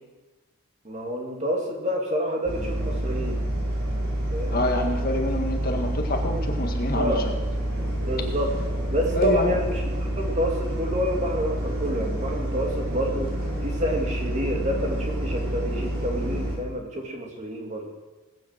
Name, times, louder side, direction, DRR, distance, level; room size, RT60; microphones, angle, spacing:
voice 1, 0.8-3.4 4.3-4.6 6.9-7.2 8.1-8.5 8.9-13.3 13.6-17.9, equal, 30° right, 0 dB, 2.7 m, -28 dB
sound 1, 2.4-16.5, right 1 dB, 55° right, 5.3 m, -28 dB
voice 2, 4.5-7.2 9.1-9.5, left 1 dB, 40° left, 3 dB, 1.8 m, -26 dB
20.5 x 9.3 x 7.6 m, 1.2 s
head